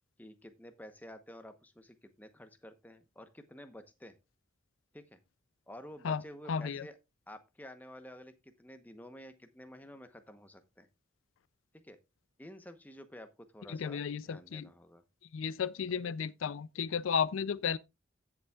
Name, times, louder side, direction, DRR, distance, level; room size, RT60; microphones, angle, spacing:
voice 1, 0.2-4.2 4.9-5.2 5.7-7.0 7.3-10.9 11.7-12.0 12.4-15.0 15.9-16.1, equal, 10° left, 0.9 m, -51 dB
voice 2, 6.5-6.9 13.7-14.7 15.3-17.8, left 6 dB, 85° left, 0.4 m, -33 dB
16.0 x 7.1 x 2.3 m
head